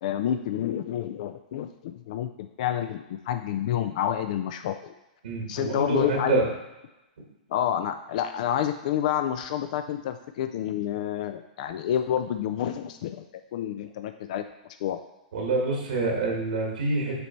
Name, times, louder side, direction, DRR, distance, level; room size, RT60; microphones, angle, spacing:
voice 1, 0.0-4.9 5.5-6.4 7.5-13.2 13.5-14.4 14.8-15.0, left 10 dB, 60° left, 8 dB, 0.4 m, -29 dB
voice 2, 5.2-6.4 15.3-17.2, right 3 dB, 80° right, -1 dB, 1.7 m, -26 dB
6.8 x 3.3 x 4.4 m, 1.0 s
hypercardioid pair, 130°, 5 cm